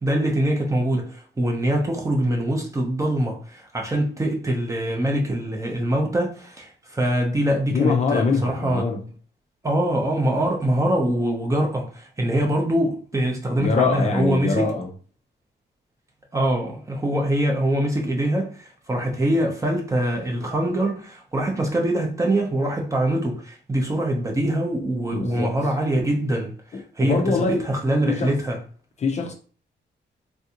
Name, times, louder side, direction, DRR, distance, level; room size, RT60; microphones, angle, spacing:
voice 1, 0.0-8.9 9.6-14.7 16.3-28.6, right 1 dB, 15° right, 0.5 m, -24 dB
voice 2, 7.7-9.0 13.6-14.9 25.1-25.6 26.7-27.6 28.1-28.4 29.0-29.3, left 4 dB, 35° left, 0.5 m, -23 dB
3.4 x 2.5 x 2.8 m
wide cardioid pair, 170°, 19 cm